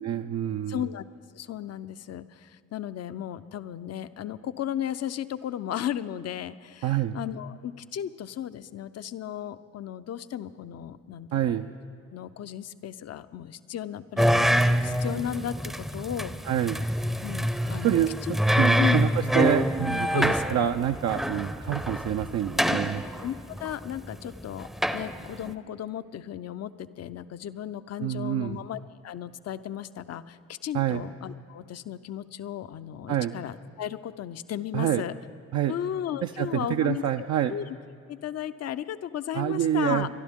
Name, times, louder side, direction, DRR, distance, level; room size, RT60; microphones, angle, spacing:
voice 1, 0.0-0.9 6.8-7.2 11.3-11.7 16.5-16.8 17.7-23.0 28.0-28.6 30.7-31.0 33.1-33.4 34.7-35.0 35.5-35.7 36.2-37.6 39.3-40.1, right 11 dB, 60° right, 6 dB, 0.5 m, -27 dB
voice 2, 0.7-1.1 1.3-11.5 12.1-16.3 17.2-18.0 18.8-19.1 20.1-20.6 22.7-22.8 23.2-24.7 24.9-35.1 35.7-37.0 37.5-37.6 38.1-40.1, left 10 dB, 50° left, 13 dB, 0.6 m, -35 dB
sound 1, 14.2-25.5, equal, ahead, 0.6 m, -26 dB
23.5 x 11.5 x 3.6 m, 2.4 s
supercardioid pair, 55°, 32 cm